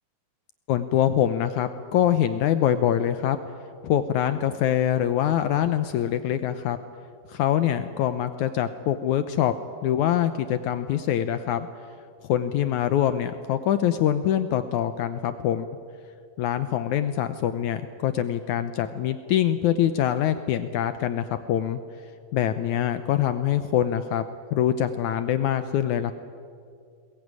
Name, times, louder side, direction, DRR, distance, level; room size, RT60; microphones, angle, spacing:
voice 1, 0.7-3.4 3.8-6.8 7.3-9.5 9.8-11.7 12.2-15.7 16.4-21.8 22.3-24.2 24.5-26.1, left 10 dB, 75° left, 11 dB, 1.8 m, -24 dB
22.0 x 20.0 x 9.6 m, 2.3 s
omnidirectional pair, 4.2 m